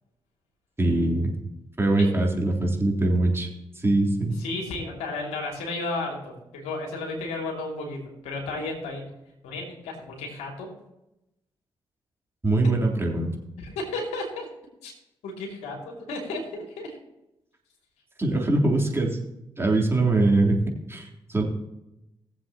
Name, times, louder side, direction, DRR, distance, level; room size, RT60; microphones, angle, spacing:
voice 1, 0.8-1.3 1.8-3.5 3.8-4.4 12.4-13.4 18.2-19.2 19.6-20.6 20.9-21.4, right 2 dB, 20° right, -2 dB, 3.6 m, -22 dB
voice 2, 4.4-9.1 9.4-10.7 13.6-14.5 14.8-14.9 15.2-17.0 19.7-19.8, left 2 dB, 80° left, 0 dB, 2.7 m, -33 dB
19.5 x 7.6 x 3.0 m, 0.90 s
hypercardioid pair, 40°, 11 cm